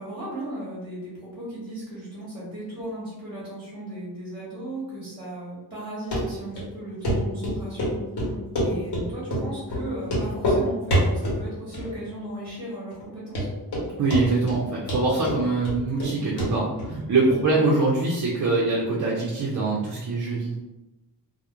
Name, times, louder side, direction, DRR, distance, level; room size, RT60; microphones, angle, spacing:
voice 1, 0.0-7.9 8.6-13.5 17.5-17.6, right 1 dB, 10° right, -7 dB, 0.8 m, -36 dB
Run, 6.1-6.2 6.6-6.7 7.0-7.2 7.4-7.9 8.2-9.0 9.3-9.4 9.7-9.8 10.1-10.6 10.9-11.4 11.7-12.2 12.5-12.6 13.0-13.1 13.4-13.9 14.1-14.6 14.9-16.1 16.4-16.5 16.8-16.9, equal, 65° left, 1.0 m, -25 dB
voice 2, 14.0-20.5, right 3 dB, 50° right, -4 dB, 0.5 m, -23 dB
2.3 x 2.0 x 2.8 m, 1.0 s
wide cardioid pair, 125°, 43 cm